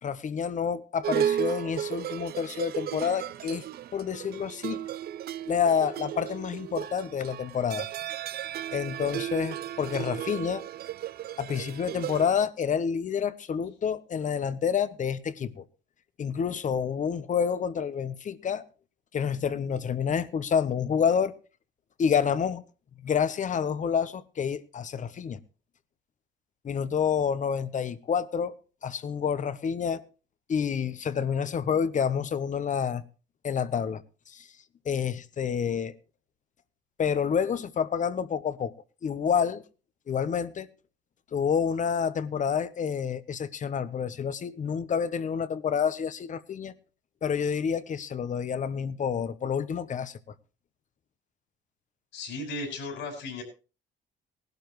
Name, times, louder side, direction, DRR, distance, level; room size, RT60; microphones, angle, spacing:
voice 1, 0.0-3.6 3.9-4.8 5.5-7.9 8.7-10.6 11.4-15.7 16.2-18.7 19.1-21.3 22.0-22.6 23.0-25.4 26.6-28.5 28.8-30.0 30.5-33.0 33.4-34.5 34.8-35.9 37.0-38.7 39.0-39.6 40.1-40.7 41.3-46.7 47.2-50.2, left 7 dB, 40° left, 1.0 m, -28 dB
sound 1, 1.0-12.5, right 11 dB, 55° right, 0.5 m, -34 dB
voice 2, 52.1-53.4, left 2 dB, 70° left, 5.9 m, -35 dB
19.0 x 12.0 x 3.1 m
cardioid pair, 115°, 19 cm